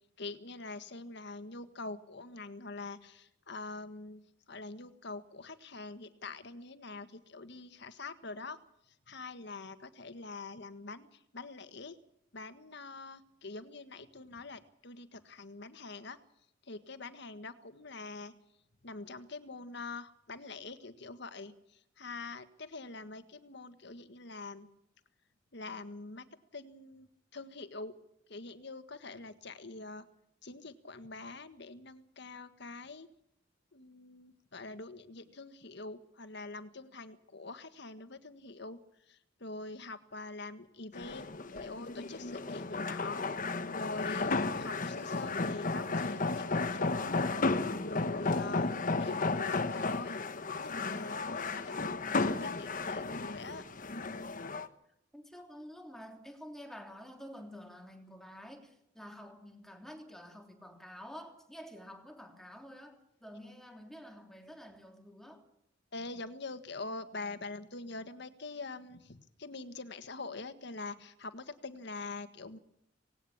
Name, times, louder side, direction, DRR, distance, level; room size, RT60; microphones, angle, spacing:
voice 1, 0.2-8.6 8.9-12.0 12.3-16.2 16.6-18.3 18.8-24.7 25.5-27.9 28.3-30.1 30.4-33.1 33.7-38.8 39.1-43.2 43.7-47.1 47.8-48.7 49.0-50.2 50.6-53.6 65.9-72.6, left 3 dB, 65° left, 11 dB, 1.6 m, -44 dB
sound 1, 40.9-54.7, left 3 dB, 45° left, 1.2 m, -34 dB
voice 2, 51.7-52.3 55.1-65.4, equal, ahead, 3 dB, 3.2 m, -49 dB
18.5 x 18.0 x 8.7 m, 0.74 s
head